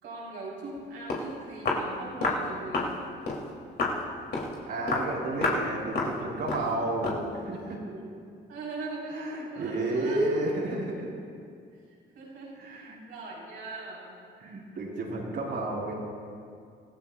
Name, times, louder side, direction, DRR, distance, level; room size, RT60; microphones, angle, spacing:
voice 1, 0.0-2.9 8.5-10.3 12.1-14.1 15.5-15.6, right 3 dB, 90° right, -6 dB, 4.5 m, -40 dB
Walk footsteps, 0.8-0.9 1.1-1.3 1.7-1.9 2.2-2.4 2.7-2.9 3.3-3.4 3.8-4.0 4.3-4.5 4.9-5.1 5.4-5.7 6.0-6.2 6.5-6.7 7.0-7.2, left 3 dB, 55° left, 3.1 m, -28 dB
voice 2, 4.7-8.0 9.1-11.1 12.6-13.0 14.4-15.9, right 2 dB, 60° right, -3 dB, 4.5 m, -31 dB
26.0 x 16.0 x 2.5 m, 2.3 s
cardioid pair, 90°, 20 cm